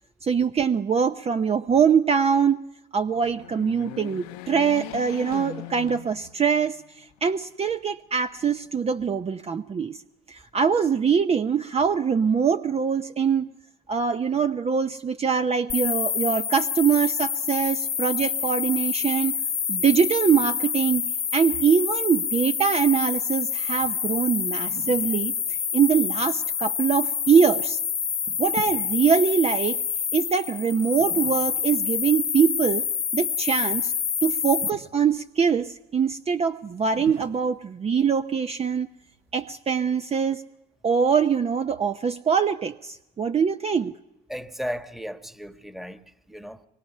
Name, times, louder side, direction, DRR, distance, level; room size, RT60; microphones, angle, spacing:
voice 1, 0.2-2.6 2.9-10.0 10.3-13.5 13.9-19.4 19.7-25.3 25.7-27.8 28.4-29.8 30.1-32.8 33.1-33.9 34.2-38.9 39.3-40.4 40.8-43.9, right 6 dB, 30° right, 0.8 m, -23 dB
sound 1, 3.1-6.7 7.2-7.3 8.3-9.1, left 17 dB, 85° left, 0.9 m, -40 dB
sound 2, 15.7-34.7, left 7 dB, 35° left, 1.1 m, -27 dB
sound 3, 23.7-39.5, right 7 dB, 65° right, 3.3 m, -48 dB
voice 2, 44.3-46.0 46.3-46.7, equal, ahead, 1.5 m, -35 dB
24.0 x 22.0 x 5.6 m
supercardioid pair, 80°, 20 cm